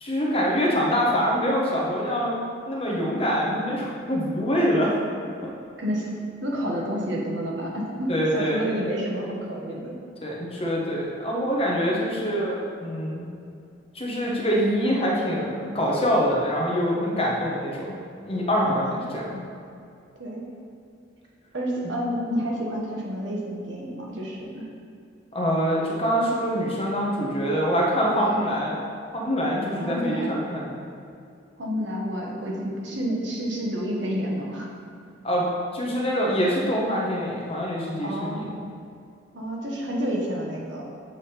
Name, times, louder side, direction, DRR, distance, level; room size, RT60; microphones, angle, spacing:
voice 1, 0.0-2.4 2.7-4.9 5.4-5.5 8.1-8.7 10.2-13.3 13.9-18.0 18.3-19.4 21.8-22.0 25.3-28.8 29.1-30.8 35.2-35.5 35.7-38.6, equal, 30° left, -3 dB, 1.0 m, -25 dB
voice 2, 6.4-9.9 18.6-18.9 20.2-20.5 21.5-24.7 28.1-28.4 29.8-30.3 31.6-34.7 38.0-38.5 39.3-40.8, equal, 75° right, -2 dB, 1.2 m, -29 dB
8.1 x 3.6 x 4.3 m, 2.5 s
head